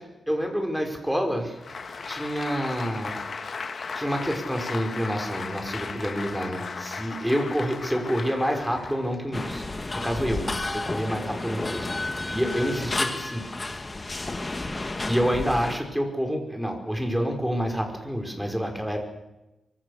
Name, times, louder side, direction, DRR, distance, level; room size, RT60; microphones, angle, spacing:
voice 1, 0.3-1.6 2.1-3.3 3.9-9.6 9.9-13.4 15.0-19.0, equal, ahead, 3 dB, 5.6 m, -28 dB
Applause, 1.5-9.3, left 4 dB, 50° left, 2.1 m, -36 dB
sound 1, 9.3-15.8, left 2 dB, 25° left, 2.5 m, -31 dB
24.5 x 24.0 x 6.8 m, 0.98 s
wide cardioid pair, 120°, 0 cm